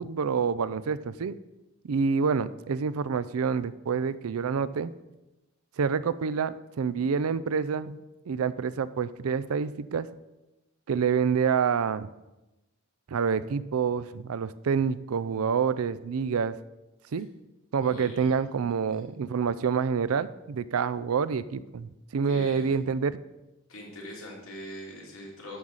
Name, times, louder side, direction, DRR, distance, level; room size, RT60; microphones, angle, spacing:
voice 1, 0.0-1.3 1.8-4.9 5.8-8.0 8.3-10.1 10.9-12.1 13.1-16.6 17.1-17.3 17.7-23.2, right 6 dB, 90° right, 15 dB, 0.4 m, -27 dB
voice 2, 17.8-18.4 22.2-22.8 23.7-25.6, equal, 70° left, -2 dB, 2.9 m, -42 dB
11.0 x 4.0 x 7.2 m, 1.0 s
head